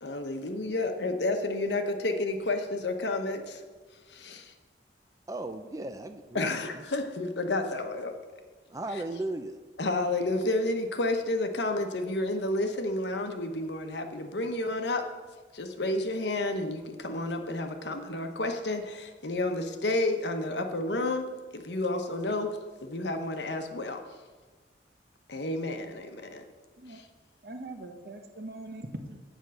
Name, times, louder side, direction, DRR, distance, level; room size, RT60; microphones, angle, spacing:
voice 1, 0.0-3.6 4.1-4.5 6.3-8.1 9.8-15.0 15.5-24.0 25.3-26.4 26.9-27.1, left 2 dB, 75° left, 6 dB, 1.0 m, -31 dB
voice 2, 5.3-6.5 6.7-6.8 8.7-9.6, right 2 dB, 20° right, 8 dB, 0.4 m, -36 dB
voice 3, 27.4-29.2, right 1 dB, 55° right, 5 dB, 1.0 m, -42 dB
8.1 x 5.3 x 7.6 m, 1.3 s
head